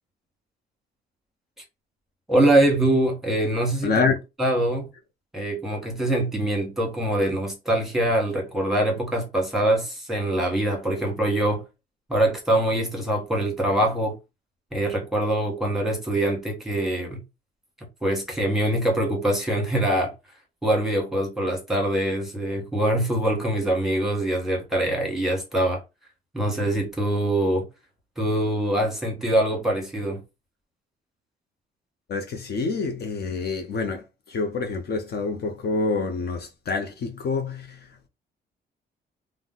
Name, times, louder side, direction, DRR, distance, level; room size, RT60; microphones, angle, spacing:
voice 1, 2.3-3.9 4.4-4.9 5.3-11.6 12.1-14.2 14.7-17.2 18.0-20.1 20.6-25.8 26.3-27.7 28.2-30.2, right 1 dB, ahead, 1.2 m, -23 dB
voice 2, 3.8-4.2 32.1-38.1, left 4 dB, 55° left, 0.6 m, -27 dB
2.5 x 2.1 x 3.7 m
cardioid pair, 90°, 20 cm